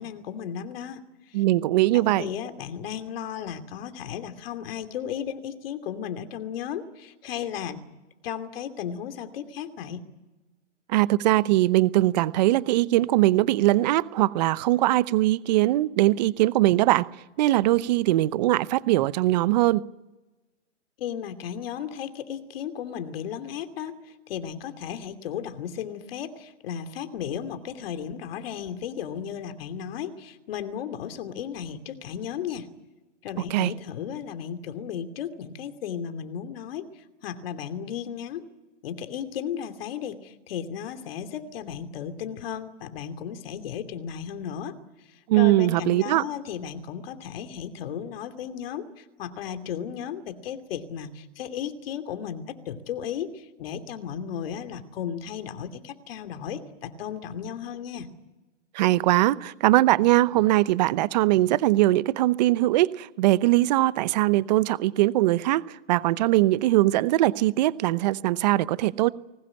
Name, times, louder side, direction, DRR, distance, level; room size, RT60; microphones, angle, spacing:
voice 1, 0.0-1.4 1.9-7.8 8.2-10.0 21.0-32.7 33.2-38.4 38.8-58.1, left 8 dB, 50° left, 9 dB, 2.8 m, -35 dB
voice 2, 1.3-2.3 10.9-17.1 17.4-19.8 33.5-33.7 45.3-46.2 58.7-69.1, right 16 dB, 35° right, 18 dB, 0.8 m, -21 dB
21.0 x 19.5 x 9.9 m, 1.1 s
hypercardioid pair, 145°, 37 cm